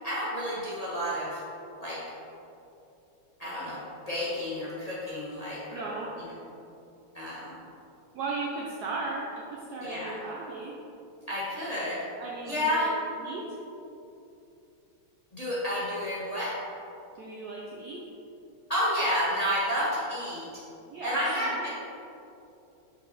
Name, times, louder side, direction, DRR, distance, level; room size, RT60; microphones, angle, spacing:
voice 1, 0.0-1.4 1.8-2.0 3.4-6.3 7.1-7.6 9.8-10.1 11.3-12.0 12.5-12.9 15.3-16.6 18.7-20.6 21.0-21.7, equal, 25° left, -9 dB, 0.8 m, -30 dB
voice 2, 5.7-6.1 8.1-10.8 12.2-13.6 17.1-18.0 20.9-21.7, right 3 dB, 90° right, -3 dB, 0.8 m, -36 dB
5.5 x 4.7 x 4.0 m, 2.8 s
omnidirectional pair, 2.4 m